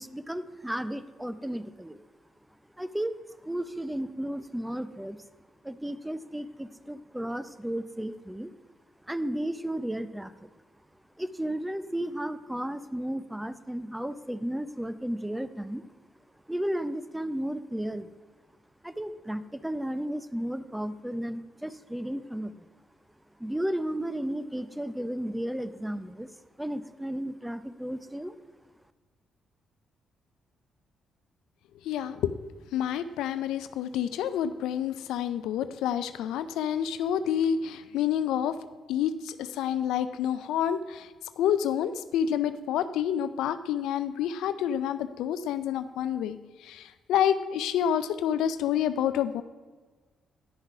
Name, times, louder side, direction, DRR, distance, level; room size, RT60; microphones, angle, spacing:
voice 1, 0.0-2.0 2.8-5.2 5.6-8.5 9.0-10.5 11.2-15.8 16.5-18.1 18.8-22.7 23.4-26.3 26.6-28.4, right 1 dB, 10° right, 13 dB, 0.7 m, -34 dB
voice 2, 31.8-32.3 32.7-38.6 38.9-41.1 41.4-49.4, left 9 dB, 80° left, 12 dB, 0.4 m, -28 dB
11.0 x 6.4 x 4.8 m, 1.3 s
hypercardioid pair, 50°, 0 cm